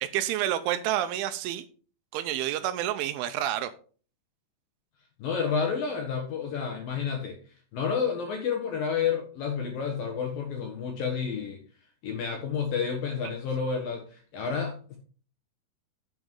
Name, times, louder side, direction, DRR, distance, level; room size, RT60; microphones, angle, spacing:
voice 1, 0.0-1.6 2.1-3.7, right 12 dB, 80° right, 11 dB, 3.0 m, -29 dB
voice 2, 5.2-7.4 7.7-11.6 12.0-15.0, left 6 dB, 65° left, 3 dB, 2.3 m, -30 dB
10.5 x 8.1 x 3.7 m, 0.40 s
omnidirectional pair, 5.7 m